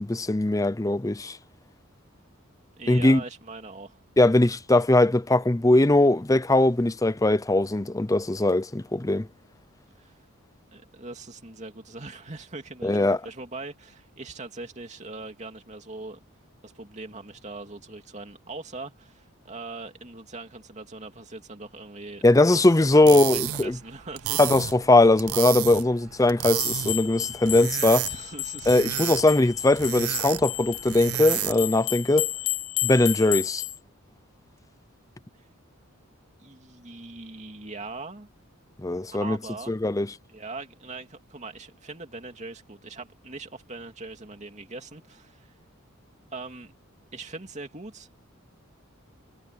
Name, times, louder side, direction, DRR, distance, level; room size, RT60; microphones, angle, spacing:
voice 1, 0.0-1.4 2.9-3.2 4.2-9.3 12.8-13.2 22.2-23.8 24.4-28.1 28.7-32.3 32.8-33.6 38.8-39.4 39.7-40.1, left 2 dB, 15° left, 0.6 m, -20 dB
voice 2, 2.8-4.0 10.0-10.2 10.7-16.2 16.6-22.3 22.5-22.6 22.9-24.6 28.0-28.8 36.4-38.3 39.1-39.7 40.3-45.5 46.3-46.7 47.1-48.1, right 3 dB, 35° right, 2.6 m, -41 dB
sound 1, 22.9-31.8, right 12 dB, 85° right, 0.6 m, -32 dB
sound 2, 26.6-33.8, left 15 dB, 80° left, 1.8 m, -32 dB
head